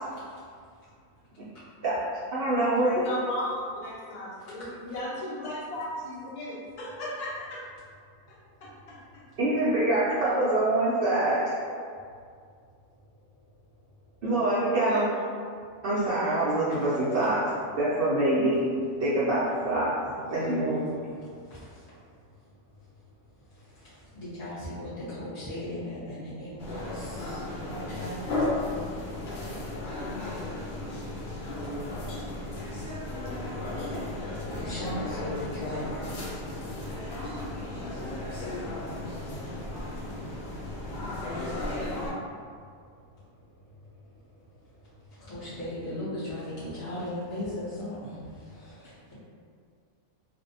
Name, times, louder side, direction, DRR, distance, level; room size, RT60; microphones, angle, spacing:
voice 1, 2.3-3.1 9.4-11.8 14.2-15.0 15.8-18.6 19.0-19.9 20.3-20.8, right 1 dB, 75° right, -10 dB, 0.5 m, -25 dB
voice 2, 2.8-7.6 8.6-9.2 14.8-15.3, left 1 dB, 90° left, -5 dB, 1.2 m, -36 dB
voice 3, 20.3-21.1 24.2-24.9 25.2-26.8 27.7-28.4 34.4-36.2 45.3-48.2, left 1 dB, 45° left, -13 dB, 0.5 m, -36 dB
sound 1, 26.6-42.1, left 2 dB, 70° left, 0.9 m, -34 dB
2.5 x 2.0 x 2.6 m, 2.1 s
omnidirectional pair, 1.5 m